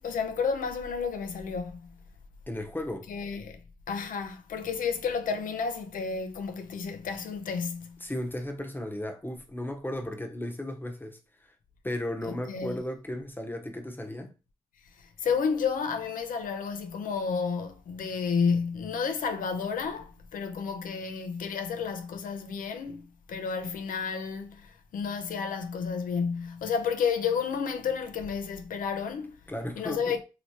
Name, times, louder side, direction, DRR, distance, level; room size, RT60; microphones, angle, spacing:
voice 1, 0.0-1.9 3.1-3.6 3.9-8.0 12.2-12.8 15.0-29.4 29.8-30.2, left 6 dB, 80° left, 0.6 m, -31 dB
voice 2, 2.5-3.1 8.0-11.5 11.8-14.3 29.5-30.1, left 1 dB, 15° left, 0.9 m, -35 dB
3.0 x 2.9 x 2.8 m
supercardioid pair, 50°, 14 cm